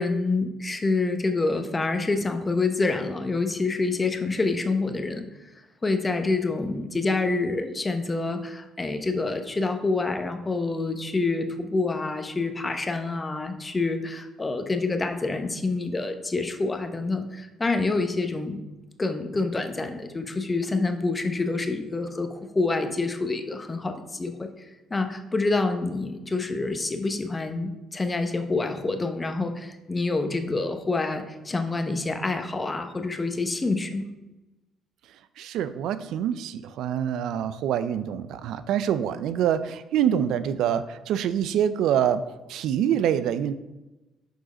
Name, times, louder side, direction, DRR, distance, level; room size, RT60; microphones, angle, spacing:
voice 1, 0.0-5.2 5.8-18.6 19.0-24.5 24.9-34.0, left 3 dB, 25° left, 6 dB, 0.9 m, -27 dB
voice 2, 35.4-42.2 42.5-43.5, right 9 dB, 70° right, 13 dB, 0.4 m, -25 dB
6.3 x 4.9 x 5.1 m, 1.0 s
supercardioid pair, 65°, 0 cm